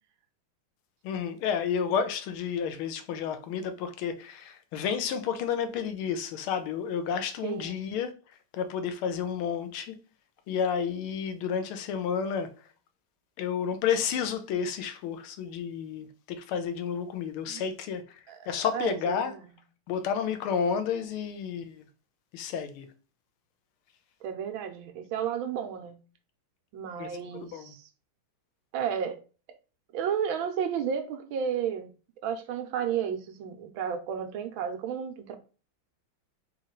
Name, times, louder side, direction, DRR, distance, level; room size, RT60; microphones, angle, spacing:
voice 1, 1.0-8.1 8.5-10.0 10.5-12.5 13.4-19.3 19.9-21.8 22.3-22.9 27.0-27.7, left 7 dB, 80° left, 1.6 m, -31 dB
voice 2, 7.4-7.8 17.5-17.6 18.3-19.4 24.2-26.0 26.7-27.8 28.7-29.2 29.9-31.9 32.2-35.4, right 8 dB, 75° right, 1.4 m, -32 dB
4.2 x 3.0 x 3.7 m
omnidirectional pair, 2.3 m